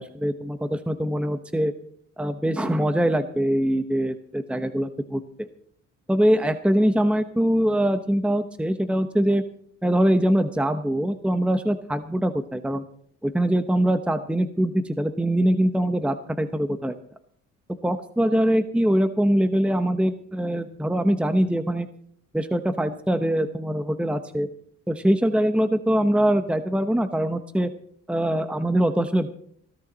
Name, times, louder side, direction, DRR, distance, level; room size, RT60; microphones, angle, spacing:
voice 1, 0.0-1.7 2.2-5.5 6.1-9.4 9.8-12.8 13.2-17.0 17.8-21.9 22.3-24.5 24.9-27.7 28.1-29.3, right 1 dB, 5° right, 9 dB, 0.9 m, -23 dB
19.5 x 14.0 x 4.1 m, 0.63 s
cardioid pair, 90°, 30 cm